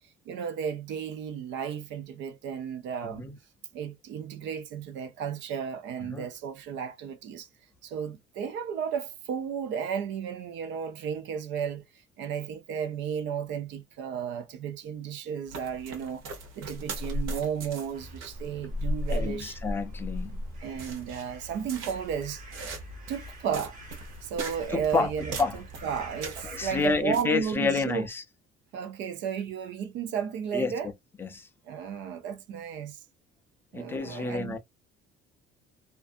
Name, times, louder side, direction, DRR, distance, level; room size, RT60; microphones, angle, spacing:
voice 1, 0.3-3.3 3.7-7.5 7.8-11.8 12.2-16.2 16.6-19.6 20.6-22.4 23.1-23.8 24.2-28.1 28.7-30.9 31.7-33.0 33.7-34.6, right 7 dB, 65° right, 0.5 m, -33 dB
voice 2, 3.0-3.4 6.1-6.2 19.1-20.4 24.7-25.1 25.4-25.6 26.4-28.2 30.5-30.7 31.2-31.5 33.7-34.6, left 4 dB, 10° left, 0.4 m, -29 dB
sound 1, 15.5-27.2, equal, 90° right, 1.0 m, -37 dB
sound 2, 17.9-27.0, right 2 dB, 40° right, 1.3 m, -46 dB
2.5 x 2.4 x 2.4 m
cardioid pair, 170°, 21 cm